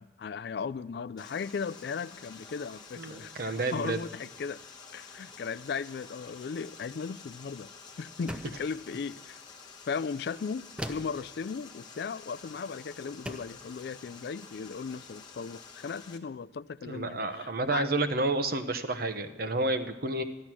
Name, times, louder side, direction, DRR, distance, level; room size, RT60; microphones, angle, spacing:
voice 1, 0.0-4.6 4.9-7.7 8.0-9.4 9.9-17.9, left 5 dB, 60° left, 0.3 m, -37 dB
Water, 1.2-16.2, left 5 dB, 25° left, 1.1 m, -50 dB
voice 2, 3.0-4.0 16.9-20.2, right 2 dB, 55° right, 0.9 m, -30 dB
sound 1, 8.3-8.7 10.8-11.2 12.5-12.7 13.2-13.6, equal, 5° right, 0.6 m, -39 dB
14.0 x 11.5 x 6.0 m
head